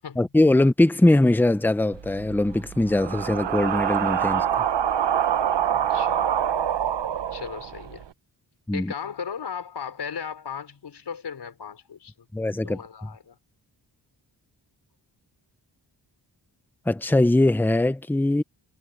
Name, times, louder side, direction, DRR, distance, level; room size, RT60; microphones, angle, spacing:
voice 1, 0.2-4.4 8.7-8.9 12.3-12.8 16.9-18.4, left 1 dB, 5° left, 0.7 m, -21 dB
sound 1, 1.9-8.1, right 9 dB, 75° right, 1.1 m, -25 dB
voice 2, 5.7-6.2 7.3-8.0 8.7-12.3 12.6-13.4, left 7 dB, 65° left, 5.2 m, -36 dB
wide cardioid pair, 175°, 43 cm